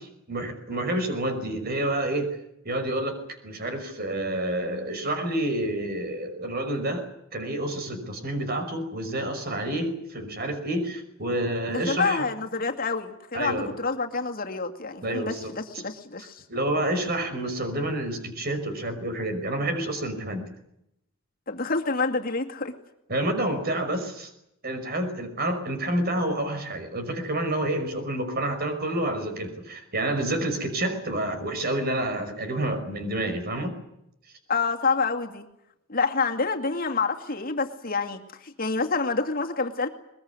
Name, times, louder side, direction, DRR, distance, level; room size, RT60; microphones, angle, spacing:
voice 1, 0.3-2.4 2.6-12.3 13.3-13.8 15.0-15.5 16.5-20.5 23.1-24.3 24.6-33.8, right 1 dB, 50° right, 8 dB, 5.5 m, -29 dB
voice 2, 11.7-16.4 21.5-22.7 34.5-35.4 35.9-39.9, left 4 dB, 45° left, 3 dB, 2.3 m, -27 dB
22.0 x 22.0 x 9.6 m, 0.81 s
head